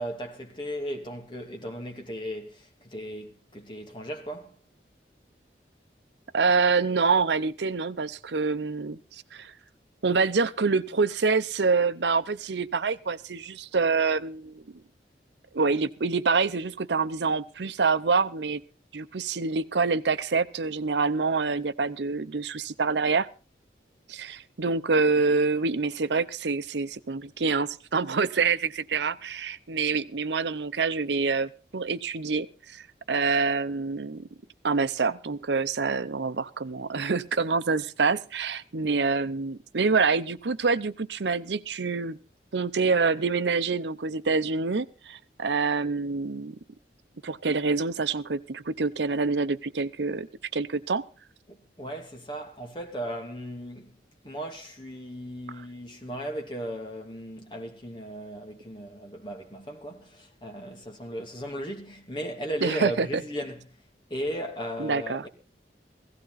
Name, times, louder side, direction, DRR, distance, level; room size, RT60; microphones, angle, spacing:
voice 1, 0.0-4.5 51.5-53.9 54.2-63.7 64.1-65.3, right 1 dB, 25° left, 2.5 m, -36 dB
voice 2, 6.3-9.5 10.0-14.6 15.5-18.6 18.9-23.3 24.1-34.3 34.6-42.2 42.5-46.6 47.2-50.3 50.5-51.0 55.6-55.7 62.6-63.2 64.8-65.3, right 4 dB, 80° right, 0.7 m, -26 dB
16.5 x 15.5 x 4.0 m
head